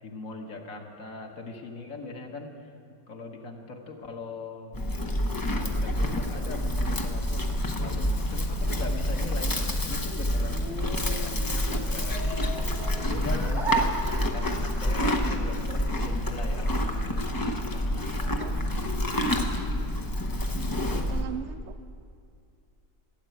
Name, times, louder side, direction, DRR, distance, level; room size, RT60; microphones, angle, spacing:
voice 1, 0.0-2.7 3.1-4.8 5.5-9.6 9.8-10.8 11.1-12.6 13.1-17.3 17.7-19.1, left 3 dB, 55° left, 2 dB, 1.5 m, -41 dB
Livestock farm animals working animals, 4.7-21.3, left 1 dB, 35° left, 0.3 m, -28 dB
sound 1, 10.2-14.7, right 4 dB, ahead, 0.8 m, -35 dB
voice 2, 18.2-18.9 20.5-21.8, right 8 dB, 70° right, 12 dB, 0.7 m, -40 dB
13.5 x 8.0 x 9.1 m, 2.4 s
omnidirectional pair, 1.7 m